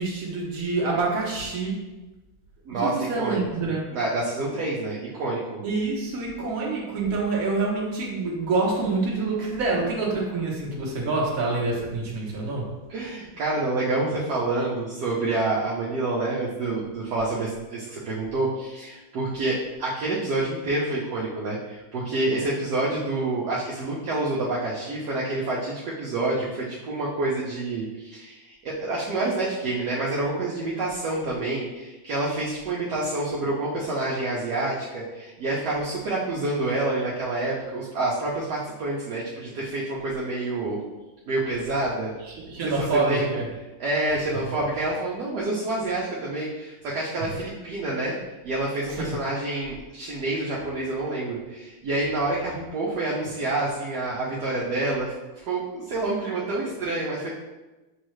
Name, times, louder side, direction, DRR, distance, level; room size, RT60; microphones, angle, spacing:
voice 1, 0.0-1.8 2.7-3.9 5.6-12.7 42.2-43.5 47.2-47.3 49.0-49.2, right 3 dB, 50° right, -3 dB, 1.2 m, -26 dB
voice 2, 2.7-3.4 3.9-5.6 12.9-40.8 41.3-42.1 42.5-43.3 43.8-48.1 48.4-57.3, right 2 dB, 70° right, -6 dB, 1.1 m, -28 dB
6.3 x 2.4 x 3.1 m, 1.1 s
omnidirectional pair, 2.3 m